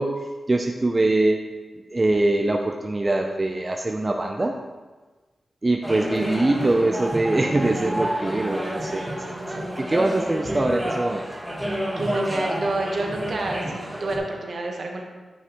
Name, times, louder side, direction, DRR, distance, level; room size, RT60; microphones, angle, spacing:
voice 1, 0.0-1.4 1.9-4.5 5.6-11.2, right 2 dB, 35° right, 3 dB, 0.6 m, -23 dB
sound 1, 5.8-14.2, equal, 10° right, 1.4 m, -29 dB
voice 2, 12.0-15.0, right 2 dB, 65° right, 1 dB, 1.3 m, -28 dB
9.5 x 5.7 x 3.1 m, 1.3 s
cardioid pair, 40°, 0 cm